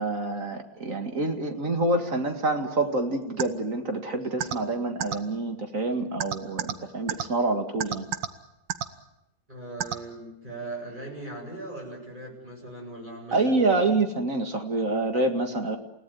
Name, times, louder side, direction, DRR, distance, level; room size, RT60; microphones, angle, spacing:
voice 1, 0.0-8.1 13.3-15.8, right 2 dB, 45° right, 5 dB, 2.4 m, -27 dB
sound 1, 3.4-3.5 4.4-4.5 5.0-5.1 6.2-6.7 7.1-7.2 7.8-8.3 8.7-8.9 9.8-9.9, right 9 dB, 90° right, 1.9 m, -27 dB
voice 2, 9.5-13.6, right 2 dB, 25° right, 0 dB, 8.2 m, -39 dB
29.0 x 18.0 x 9.4 m, 0.87 s
omnidirectional pair, 1.9 m